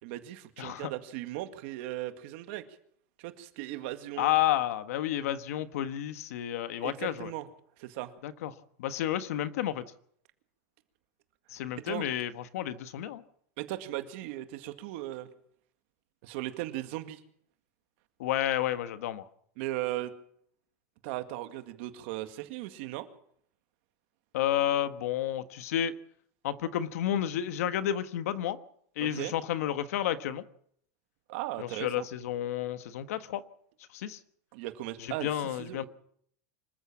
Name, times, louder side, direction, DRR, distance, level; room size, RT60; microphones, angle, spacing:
voice 1, 0.0-2.6 3.2-4.3 6.8-7.5 7.8-8.1 11.9-12.1 13.6-15.3 16.2-17.2 19.6-20.1 21.0-23.1 29.0-29.3 31.3-32.0 34.5-35.9, right 15 dB, 50° right, 9 dB, 2.0 m, -37 dB
voice 2, 0.6-0.9 4.2-7.3 8.2-8.5 8.8-9.8 11.5-13.2 18.2-19.3 24.3-25.9 26.4-28.6 29.0-30.4 31.6-33.4 33.9-34.2 35.0-35.9, left 11 dB, 85° left, 11 dB, 1.4 m, -31 dB
25.5 x 14.0 x 7.4 m, 0.67 s
supercardioid pair, 175°, 8 cm